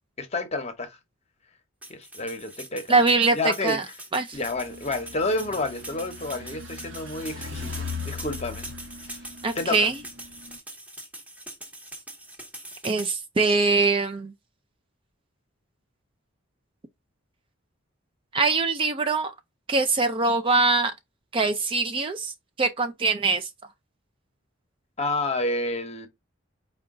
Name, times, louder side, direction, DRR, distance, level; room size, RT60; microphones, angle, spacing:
voice 1, 0.2-1.0 1.9-3.0 3.3-3.8 4.3-8.7 9.1-9.2 9.5-9.9 25.0-26.1, left 2 dB, 30° left, 0.8 m, -30 dB
sound 1, 1.8-13.1, right 1 dB, 5° right, 0.8 m, -42 dB
voice 2, 2.9-3.8 4.1-4.4 9.4-9.9 12.8-14.3 18.3-19.3 19.7-20.9 21.3-22.3 22.6-23.5, right 3 dB, 25° right, 0.3 m, -23 dB
sound 2, 4.3-10.6, left 4 dB, 60° right, 0.9 m, -39 dB
4.9 x 2.3 x 3.6 m
head